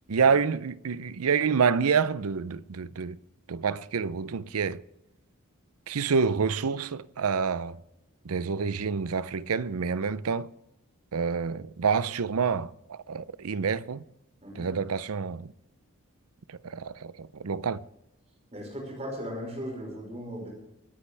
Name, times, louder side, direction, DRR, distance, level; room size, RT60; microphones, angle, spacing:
voice 1, 0.1-3.2 3.5-4.8 5.9-7.8 8.2-10.5 11.1-14.0 14.6-15.5 16.6-17.8, right 5 dB, 75° right, 0.6 m, -27 dB
voice 2, 14.4-14.7 18.5-20.5, equal, 30° right, 5.6 m, -37 dB
25.0 x 9.8 x 3.4 m
head